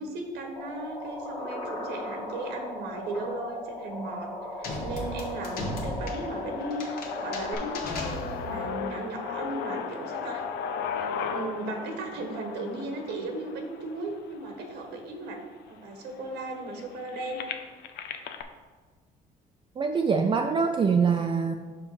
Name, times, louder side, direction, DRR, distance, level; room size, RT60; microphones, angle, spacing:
voice 1, 0.0-4.3 4.6-10.4 10.9-15.4 15.7-17.4, right 2 dB, 85° right, 3 dB, 1.3 m, -36 dB
sound 1, 0.6-7.6, left 1 dB, 25° left, 1.3 m, -38 dB
sound 2, 4.6-8.7, left 1 dB, 65° left, 1.2 m, -36 dB
sound 3, 5.0-14.9 15.6-15.7 16.0-18.4, left 6 dB, 85° left, 0.6 m, -36 dB
voice 2, 19.8-21.5, right 5 dB, 30° right, 4 dB, 0.4 m, -24 dB
5.5 x 5.3 x 4.7 m, 1.4 s
cardioid pair, 110°, 17 cm